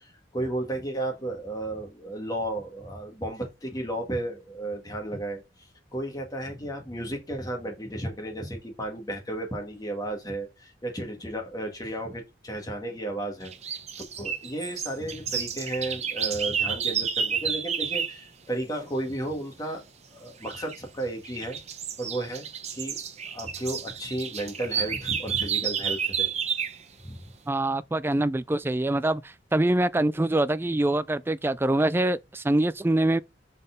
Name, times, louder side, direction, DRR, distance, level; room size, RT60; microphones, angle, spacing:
voice 1, 0.0-5.4 5.9-13.8 14.2-19.8 20.1-21.6 22.0-22.5 22.7-23.0 23.3-26.3 27.0-27.2, right 1 dB, 20° left, 1.8 m, -33 dB
sound 1, 13.5-18.2 20.4-20.8 21.2-26.8, right 7 dB, 35° right, 0.8 m, -30 dB
voice 2, 27.5-33.2, right 1 dB, 10° right, 0.3 m, -24 dB
5.3 x 4.2 x 5.3 m
head